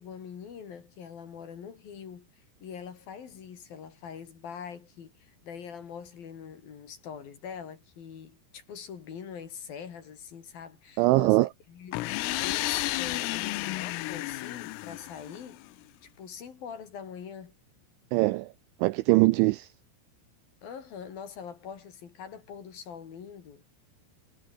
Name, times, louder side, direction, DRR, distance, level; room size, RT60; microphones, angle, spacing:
voice 1, 0.0-12.0 12.4-15.6 16.0-17.5 20.6-23.7, left 7 dB, 50° left, 4.1 m, -43 dB
voice 2, 11.0-11.5 18.1-18.5 18.8-19.7, right 21 dB, 85° right, 2.7 m, -22 dB
sound 1, 11.9-15.7, left 19 dB, 85° left, 3.6 m, -32 dB
omnidirectional pair, 5.9 m